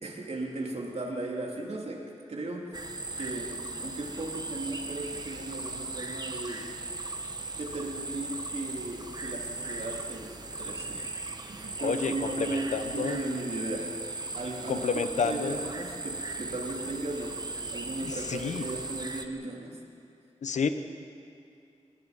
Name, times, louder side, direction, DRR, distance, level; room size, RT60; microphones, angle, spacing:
voice 1, 0.0-2.7 3.1-3.5 3.8-6.7 7.5-11.1 11.5-14.0 14.3-14.9 15.2-17.4 17.7-19.8, right 2 dB, 60° right, -1 dB, 3.7 m, -36 dB
sound 1, 2.7-19.3, right 2 dB, 35° right, 1.6 m, -38 dB
voice 2, 11.8-13.2 14.7-15.6 18.0-18.7 20.4-20.7, left 5 dB, 90° left, 9 dB, 1.1 m, -30 dB
28.5 x 19.5 x 5.4 m, 2.5 s
wide cardioid pair, 70°, 12 cm